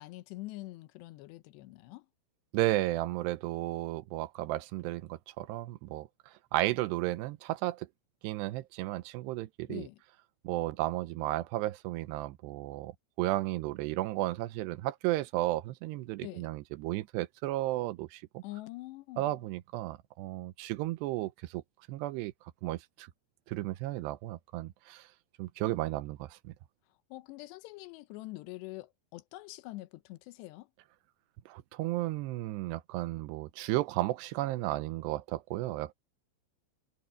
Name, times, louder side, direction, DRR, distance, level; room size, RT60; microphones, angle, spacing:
voice 1, 0.0-2.1 9.7-10.0 16.2-16.5 18.4-19.4 27.1-30.7, left 19 dB, 85° left, 3.0 m, -45 dB
voice 2, 2.5-6.1 6.5-7.9 8.2-9.9 10.4-12.9 13.2-18.4 19.2-21.6 21.9-22.3 22.6-23.1 23.5-25.1 25.4-26.5 31.5-35.9, right 17 dB, 85° right, 2.8 m, -33 dB
omnidirectional pair, 4.9 m